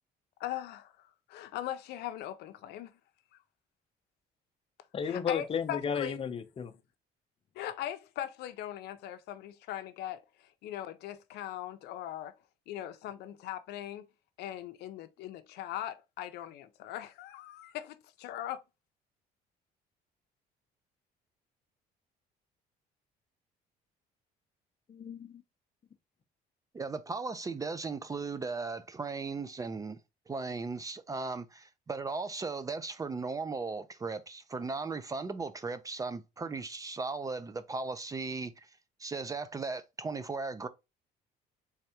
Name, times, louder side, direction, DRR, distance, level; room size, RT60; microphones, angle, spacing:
voice 1, 0.4-2.9 5.0-6.2 7.6-12.3 12.7-14.0 14.4-18.6, left 12 dB, 80° left, 0.5 m, -40 dB
voice 2, 4.9-6.7 24.9-25.4, left 7 dB, 35° left, 0.6 m, -33 dB
voice 3, 26.7-30.0 30.3-38.7 39.0-40.7, right 4 dB, 20° right, 0.3 m, -37 dB
3.5 x 3.3 x 2.8 m
cardioid pair, 110°, 17 cm